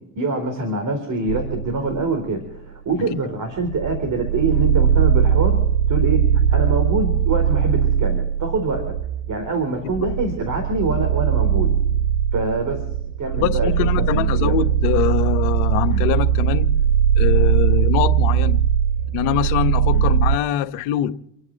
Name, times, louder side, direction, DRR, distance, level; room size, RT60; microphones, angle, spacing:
voice 1, 0.1-5.6 5.9-6.2 6.5-8.9 9.3-11.7 12.3-12.8 13.2-13.7 14.0-14.6 15.9-16.0 19.9-20.0, right 3 dB, 45° right, 5 dB, 4.4 m, -25 dB
sound 1, 1.3-2.3 2.9-3.0 3.6-20.4, right 9 dB, 90° right, 0.6 m, -20 dB
voice 2, 13.4-16.7 17.2-18.6 19.1-21.1, left 11 dB, 85° left, 7 dB, 1.4 m, -23 dB
29.0 x 9.9 x 4.2 m, 0.82 s
supercardioid pair, 75°, 41 cm